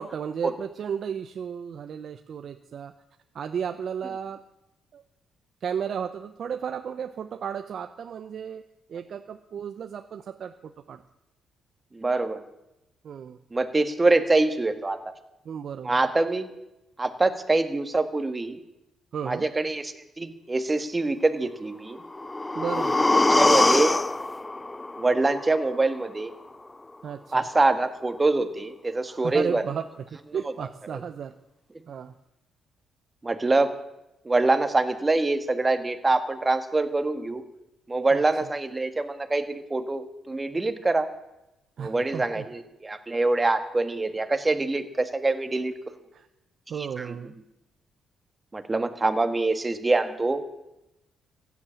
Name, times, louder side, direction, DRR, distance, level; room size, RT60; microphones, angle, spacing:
voice 1, 0.0-2.9 3.3-4.4 4.9-5.0 5.6-8.6 8.9-11.0 13.0-13.4 15.4-16.1 19.1-19.5 22.5-23.0 27.0-27.4 29.1-29.9 30.3-31.3 31.9-32.1 38.1-38.5 41.8-42.4 46.1-46.3 46.7-47.3, right 7 dB, 60° right, 7 dB, 0.8 m, -34 dB
voice 2, 11.9-12.4 13.5-15.0 15.8-16.5 17.0-18.6 19.2-22.0 23.3-24.0 25.0-26.3 27.3-29.6 33.2-33.7 34.2-37.4 37.9-41.1 41.8-45.7 47.0-47.1 48.5-50.6, right 2 dB, 20° right, 8 dB, 1.7 m, -25 dB
sound 1, 22.0-26.0 26.3-26.4, left 2 dB, 15° left, 0.4 m, -23 dB
15.5 x 9.7 x 8.8 m, 0.91 s
cardioid pair, 90°, 0 cm